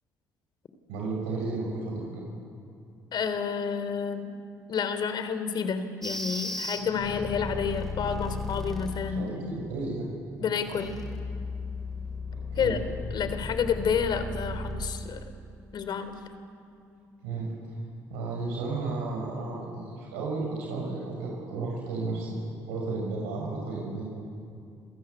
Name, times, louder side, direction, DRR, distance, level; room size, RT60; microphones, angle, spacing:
voice 1, 0.9-2.2 9.1-10.1 10.7-10.8 12.3-12.8 17.2-17.6 18.1-22.4 22.7-24.0, right 3 dB, 75° right, -1 dB, 6.2 m, -33 dB
voice 2, 3.1-4.3 4.7-9.3 10.4-11.0 12.6-12.8 13.1-15.2 15.7-16.1, left 6 dB, 55° left, 10 dB, 3.7 m, -29 dB
sound 1, 6.0-9.1 10.5-14.8, left 3 dB, 5° left, 7.4 m, -35 dB
30.0 x 22.5 x 8.5 m, 2.5 s
hypercardioid pair, 50°, 9 cm